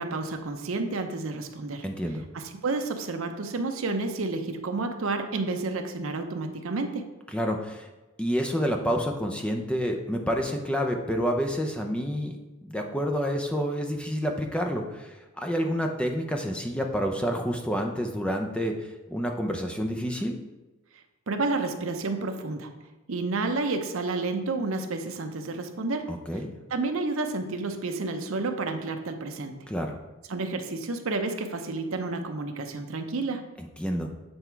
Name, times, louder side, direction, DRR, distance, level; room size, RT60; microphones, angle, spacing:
voice 1, 0.0-1.8 2.3-7.1 21.3-22.7 23.1-26.1 26.7-29.6 30.3-33.4, right 3 dB, 75° right, 6 dB, 0.7 m, -30 dB
voice 2, 1.8-2.2 7.3-7.9 8.2-18.7 19.1-20.4 26.1-26.5 29.7-30.0 33.6-34.1, equal, 5° left, 3 dB, 0.5 m, -29 dB
7.9 x 3.5 x 4.5 m, 1.1 s
head